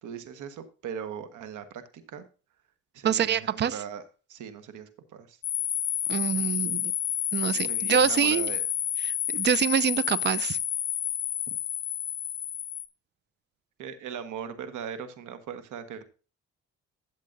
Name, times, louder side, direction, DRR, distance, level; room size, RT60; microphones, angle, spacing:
voice 1, 0.0-2.2 2.9-4.0 4.3-5.4 7.5-8.6 13.8-16.0, right 7 dB, 85° right, 1.5 m, -39 dB
voice 2, 3.0-3.7 6.1-6.9 7.3-8.5 9.0-10.6, right 8 dB, 35° right, 0.5 m, -26 dB
sound 1, 5.4-12.9, left 11 dB, 60° left, 1.1 m, -30 dB
12.5 x 7.4 x 2.6 m
cardioid pair, 90°, 30 cm